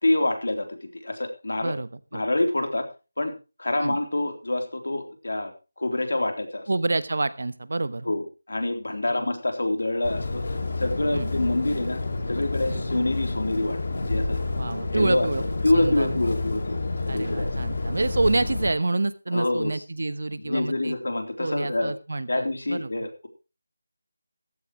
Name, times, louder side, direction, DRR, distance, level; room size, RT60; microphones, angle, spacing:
voice 1, 0.0-1.7 2.1-2.9 3.2-3.3 3.6-5.5 5.8-6.6 8.1-12.0 12.3-14.4 14.9-16.8 17.1-17.5 19.3-19.7 20.4-21.9 22.3-23.3, left 2 dB, 90° left, 6 dB, 3.5 m, -26 dB
voice 2, 1.6-2.2 3.8-4.0 6.7-8.2 9.1-9.3 11.1-11.3 12.7-12.8 14.5-15.4 15.7-16.3 17.1-20.9 21.4-22.9, right 2 dB, 55° right, 15 dB, 1.1 m, -28 dB
sound 1, 10.0-18.7, left 3 dB, 40° left, 2.3 m, -29 dB
15.0 x 13.5 x 3.1 m, 0.30 s
figure-of-eight pair, 180°, 0 cm